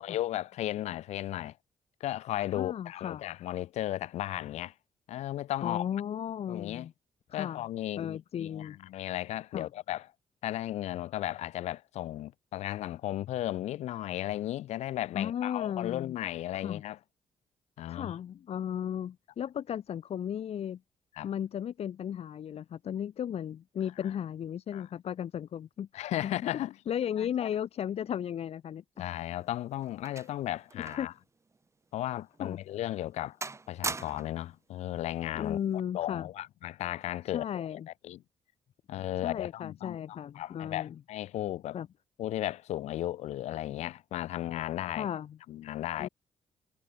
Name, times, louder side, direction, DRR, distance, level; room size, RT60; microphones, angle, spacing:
voice 1, 0.0-1.6 2.0-4.7 5.1-5.8 6.5-6.9 7.3-10.1 10.4-17.0 17.8-18.1 21.2-21.3 24.7-24.9 25.9-26.8 27.2-27.5 29.0-31.1 31.9-33.4 33.7-35.6 35.9-38.2 38.9-41.8 42.2-45.1 45.5-46.1, left 13 dB, 80° left, 0.6 m, -35 dB
voice 2, 2.5-3.2 5.6-6.9 7.3-7.6 8.0-8.8 9.5-9.7 15.1-16.1 16.5-16.8 17.9-20.8 21.2-26.4 26.9-29.1 31.0-31.1 32.4-32.6 35.3-36.3 37.3-37.9 39.2-41.0 41.7-41.9 45.0-45.4 46.0-46.1, left 9 dB, 65° left, 1.5 m, -35 dB
sound 1, 29.1-31.2 31.5-31.7 32.3-32.4 32.9-33.2 33.4-34.5 35.4-35.7, right 3 dB, 25° right, 1.1 m, -40 dB
cardioid pair, 75°, 11 cm